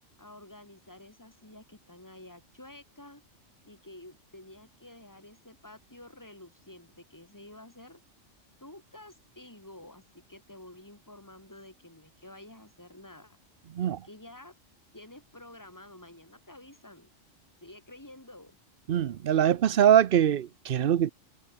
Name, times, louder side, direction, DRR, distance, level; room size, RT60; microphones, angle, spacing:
voice 1, 0.2-3.2 3.7-8.0 8.6-13.4 13.8-14.5 14.9-17.1 17.6-18.5, left 1 dB, 15° left, 4.4 m, -50 dB
voice 2, 18.9-21.1, right 10 dB, 55° right, 0.7 m, -23 dB
omnidirectional pair, 1.3 m